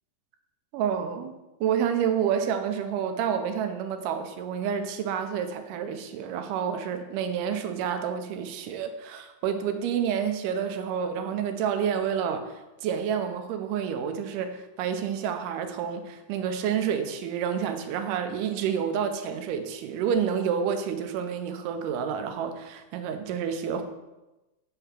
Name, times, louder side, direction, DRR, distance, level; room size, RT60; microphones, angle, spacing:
voice 1, 0.7-1.3 1.6-23.8, right 7 dB, 85° right, 7 dB, 2.2 m, -29 dB
5.5 x 3.6 x 5.7 m, 1.0 s
omnidirectional pair, 3.7 m